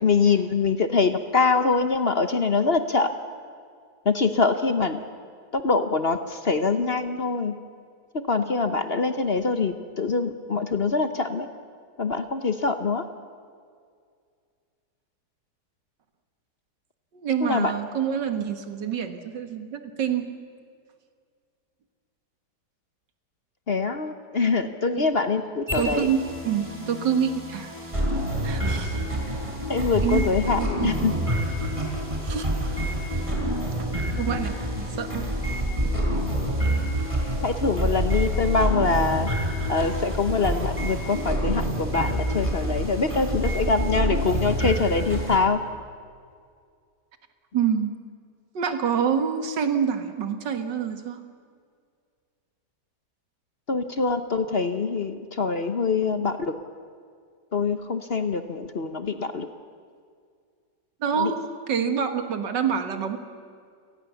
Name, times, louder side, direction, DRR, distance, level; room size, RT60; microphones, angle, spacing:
voice 1, 0.0-3.1 4.0-5.0 5.5-7.6 8.3-11.5 12.0-13.0 17.4-17.7 23.7-26.1 29.7-31.1 37.4-39.3 39.7-45.6 53.7-56.5 57.5-59.5 61.2-61.3, left 4 dB, 40° left, 9 dB, 1.0 m, -24 dB
voice 2, 17.1-20.3 25.0-25.1 25.7-27.8 28.4-29.1 30.0-30.2 30.6-31.1 32.2-32.5 33.6-33.7 34.2-34.7 35.0-35.3 47.5-47.9 48.5-51.2 61.0-61.4 61.7-63.2, right 7 dB, 85° right, 8 dB, 2.3 m, -26 dB
sound 1, 25.7-45.4, equal, 15° right, 4.1 m, -27 dB
29.5 x 18.5 x 7.1 m, 2.2 s
omnidirectional pair, 1.8 m